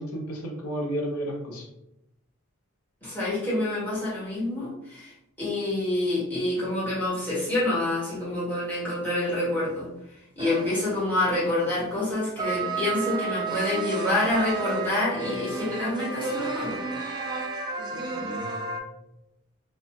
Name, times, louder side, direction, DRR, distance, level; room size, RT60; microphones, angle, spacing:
voice 1, 0.0-1.7 17.9-18.5 18.8-18.9, right 1 dB, 90° left, 0 dB, 0.6 m, -33 dB
voice 2, 3.0-5.1 5.4-9.9 10.3-16.9, left 1 dB, 10° left, -9 dB, 1.1 m, -27 dB
sound 1, 10.4-11.2 12.4-18.8, right 4 dB, 20° right, 0.3 m, -32 dB
2.6 x 2.1 x 3.4 m, 0.86 s
head